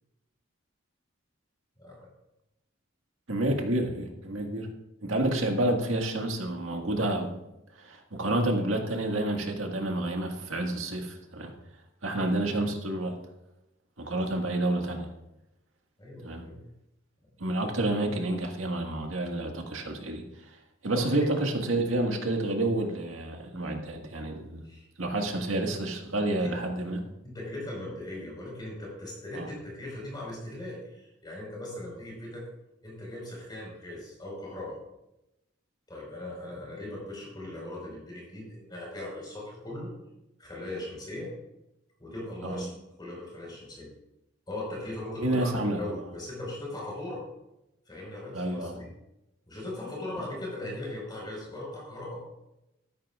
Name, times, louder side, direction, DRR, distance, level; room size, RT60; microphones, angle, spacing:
voice 1, 1.8-2.1 16.0-16.6 20.9-21.3 24.6-24.9 26.4-26.5 27.2-32.5 32.8-34.8 35.9-39.9 40.4-41.3 42.0-42.7 43.0-43.9 44.5-45.5 45.8-47.2 47.9-48.9 49.5-52.2, left 1 dB, 20° left, -3 dB, 4.8 m, -39 dB
voice 2, 3.3-4.7 5.0-7.3 7.8-11.5 12.0-13.1 14.0-15.1 16.2-16.4 17.4-20.6 20.8-24.6 25.0-27.0 29.3-29.5 42.4-42.6 45.2-45.8 48.3-48.8, right 1 dB, 80° right, 3 dB, 1.8 m, -29 dB
13.5 x 13.0 x 2.4 m, 0.89 s
head